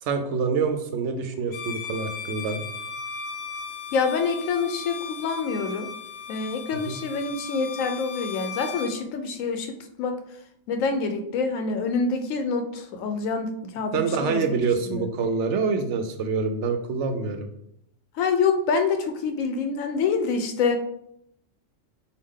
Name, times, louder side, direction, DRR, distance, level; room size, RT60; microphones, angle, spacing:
voice 1, 0.0-2.6 6.9-7.0 13.9-17.5, right 5 dB, 70° right, 7 dB, 0.9 m, -26 dB
Bowed string instrument, 1.5-9.0, left 5 dB, 60° left, 0.9 m, -37 dB
voice 2, 3.9-5.9 6.3-10.2 10.7-14.6 14.9-15.1 18.1-20.8, left 5 dB, 90° left, 6 dB, 1.0 m, -26 dB
4.8 x 2.3 x 3.6 m, 0.75 s
omnidirectional pair, 1.3 m